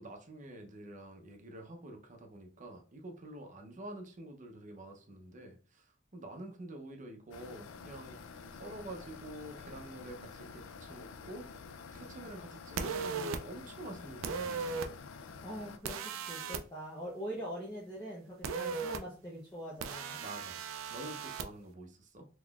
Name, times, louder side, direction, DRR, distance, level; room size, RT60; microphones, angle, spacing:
voice 1, 0.0-8.2 8.5-11.5 11.9-14.8 20.2-22.3, right 1 dB, 40° right, 3 dB, 0.7 m, -47 dB
sound 1, 7.3-15.8, left 5 dB, 70° left, 0.4 m, -49 dB
sound 2, 12.8-13.4 14.2-14.9 15.8-16.6 18.4-19.0 19.8-21.5, right 5 dB, 90° right, 0.4 m, -37 dB
voice 2, 15.4-20.2, equal, 20° left, -5 dB, 0.8 m, -43 dB
3.7 x 3.0 x 2.4 m, 0.38 s
head